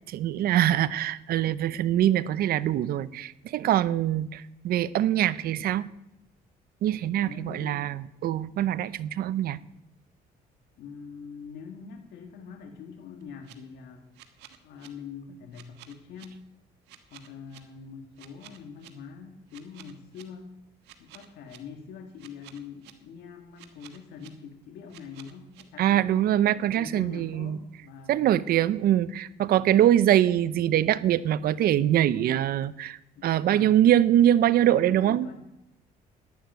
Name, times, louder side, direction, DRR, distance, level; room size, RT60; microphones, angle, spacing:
voice 1, 0.1-5.9 6.8-9.6 25.8-27.6 28.1-35.3, right 11 dB, 65° right, 0.7 m, -23 dB
voice 2, 7.2-8.0 10.8-14.1 14.6-16.4 17.1-20.6 21.0-26.1 26.7-28.3 29.5-29.9 33.1-33.8 34.8-35.4, left 6 dB, 75° left, 1.9 m, -44 dB
sound 1, 13.2-13.5 14.1-14.9 15.5-16.3 16.9-17.6 18.2-18.9 19.5-20.2 20.8-21.6 22.2-22.9 23.6-24.3 24.9-25.6, right 13 dB, 90° right, 1.6 m, -50 dB
11.5 x 11.5 x 9.1 m
cardioid pair, 110°, 17 cm